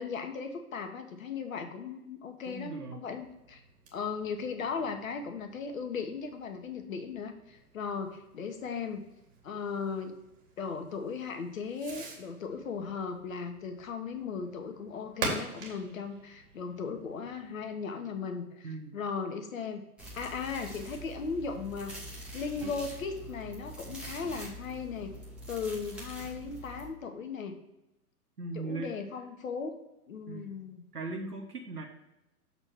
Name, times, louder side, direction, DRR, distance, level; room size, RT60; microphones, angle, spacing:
voice 1, 0.0-3.6 3.9-9.0 9.4-10.2 10.6-18.7 18.9-19.8 20.1-22.0 22.3-25.1 25.5-27.6 28.5-29.8 30.1-30.8, left 5 dB, 60° left, 6 dB, 1.2 m, -37 dB
voice 2, 2.5-3.0 18.6-19.0 28.4-28.9 30.3-30.6 30.9-31.8, right 3 dB, 80° right, 1 dB, 1.1 m, -38 dB
Fireworks, 3.1-17.7, right 3 dB, 35° right, 2.2 m, -45 dB
sound 1, 20.0-26.9, right 1 dB, ahead, 1.3 m, -44 dB
6.9 x 4.2 x 6.0 m, 0.92 s
figure-of-eight pair, 110°, 46 cm